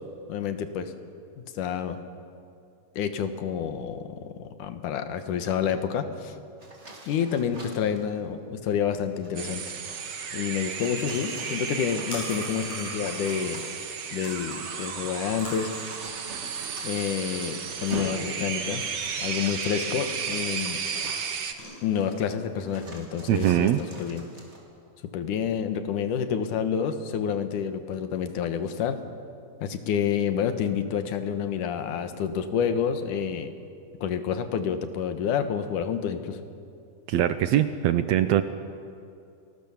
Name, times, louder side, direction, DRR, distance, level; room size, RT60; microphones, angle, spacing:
voice 1, 0.3-0.9 1.4-2.0 3.0-6.3 7.1-9.6 10.3-13.6 14.1-15.7 16.8-18.8 19.2-20.8 21.8-24.3 25.1-29.0 29.6-33.5 34.0-36.4, left 8 dB, 80° left, 9 dB, 2.8 m, -28 dB
sound 1, 6.6-8.0 9.0-21.5 22.1-22.2 22.6-24.6, right 2 dB, 20° right, 3.2 m, -44 dB
sound 2, 9.4-21.5, right 6 dB, 50° right, 1.3 m, -34 dB
sound 3, 10.2-22.9, left 1 dB, 65° left, 8.5 m, -47 dB
voice 2, 23.3-23.8 37.1-38.4, right 12 dB, 75° right, 11 dB, 1.7 m, -22 dB
29.0 x 19.5 x 7.1 m, 2.5 s
omnidirectional pair, 3.6 m